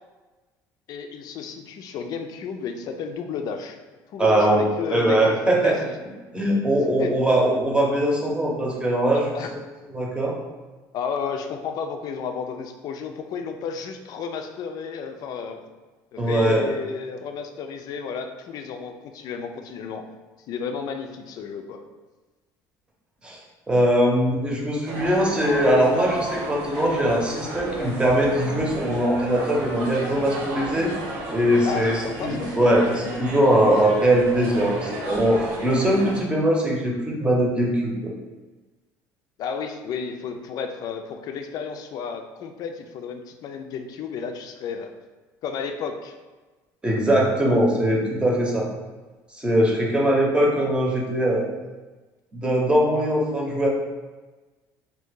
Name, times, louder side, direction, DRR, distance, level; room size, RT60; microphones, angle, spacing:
voice 1, 0.9-3.8 4.1-5.9 7.0-7.4 9.1-9.5 10.9-15.6 16.1-20.0 20.5-21.8 31.6-32.5 39.4-44.9 45.4-46.1, left 6 dB, 60° left, 5 dB, 0.4 m, -32 dB
voice 2, 4.2-5.8 6.3-9.2 9.9-10.3 16.2-16.6 23.2-23.4 23.7-30.9 31.3-38.1 46.8-48.7 49.3-51.5 52.3-53.7, right 1 dB, 15° right, -2 dB, 0.8 m, -21 dB
sound 1, 24.9-36.2, right 1 dB, 85° right, 0.8 m, -33 dB
2.7 x 2.6 x 3.7 m, 1.2 s
cardioid pair, 110°, 8 cm